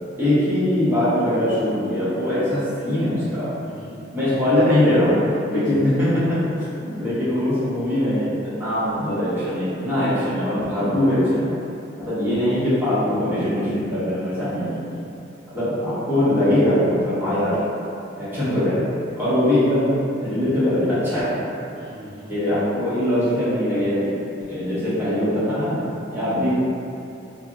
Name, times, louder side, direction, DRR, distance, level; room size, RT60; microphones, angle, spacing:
voice 1, 0.2-3.5 4.1-5.2 5.5-11.5 12.0-14.7 15.5-17.6 18.2-18.8 19.2-21.4 22.3-24.2 24.5-25.8 26.1-26.5, left 1 dB, 10° right, -13 dB, 0.8 m, -21 dB
voice 2, 3.6-4.0 14.4-15.1 21.7-22.5 26.1-26.4, equal, 30° left, -13 dB, 1.0 m, -40 dB
2.4 x 2.0 x 3.6 m, 2.7 s
head